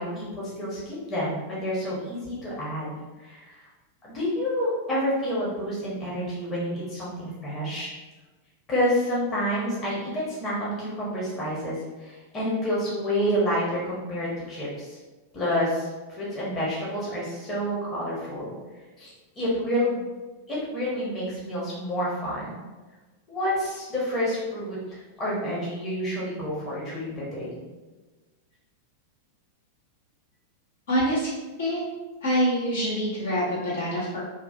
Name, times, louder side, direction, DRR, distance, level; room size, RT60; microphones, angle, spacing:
voice 1, 0.0-3.6 4.0-7.9 8.7-15.0 15.3-18.5 19.0-20.0 20.5-22.5 23.3-27.6, equal, 25° left, -6 dB, 1.1 m, -29 dB
voice 2, 30.9-31.3 31.6-31.8 32.2-34.2, equal, 65° left, -7 dB, 1.2 m, -25 dB
3.0 x 2.4 x 2.5 m, 1.2 s
figure-of-eight pair, 95°, 0 cm